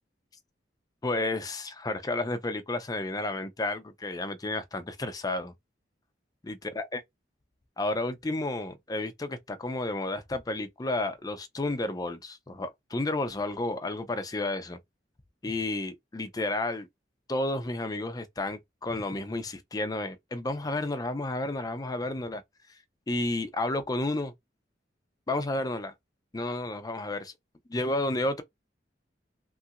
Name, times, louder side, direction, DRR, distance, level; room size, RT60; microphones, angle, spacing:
voice 1, 1.0-5.5 6.4-7.0 7.8-14.8 15.4-16.9 17.3-22.4 23.1-24.3 25.3-25.9 26.3-27.3 27.7-28.4, left 2 dB, 20° left, 0.5 m, -31 dB
3.1 x 2.8 x 2.5 m
head